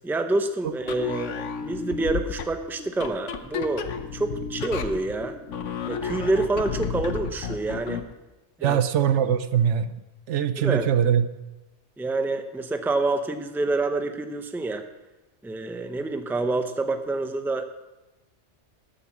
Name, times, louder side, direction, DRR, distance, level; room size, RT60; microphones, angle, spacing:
voice 1, 0.0-5.4 5.9-8.0 8.6-8.8 10.6-10.9 12.0-14.8 15.4-17.6, right 2 dB, ahead, 7 dB, 0.6 m, -27 dB
sound 1, 0.8-8.1, left 6 dB, 85° left, 1.2 m, -32 dB
voice 2, 8.6-9.9 10.3-11.2, right 9 dB, 75° right, 12 dB, 1.0 m, -22 dB
14.0 x 8.6 x 6.1 m, 1.0 s
omnidirectional pair, 1.2 m